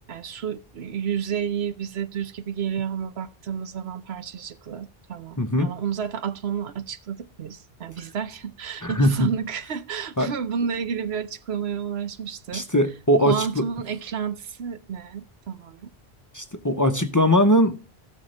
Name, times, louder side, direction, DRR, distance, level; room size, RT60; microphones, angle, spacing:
voice 1, 0.1-12.7 13.3-15.9, right 7 dB, 85° right, 1.1 m, -31 dB
voice 2, 5.4-5.7 8.0-8.1 8.8-9.3 10.2-10.3 12.5-13.6 16.3-17.8, equal, 20° left, 0.7 m, -21 dB
16.5 x 6.5 x 3.2 m
omnidirectional pair, 1.0 m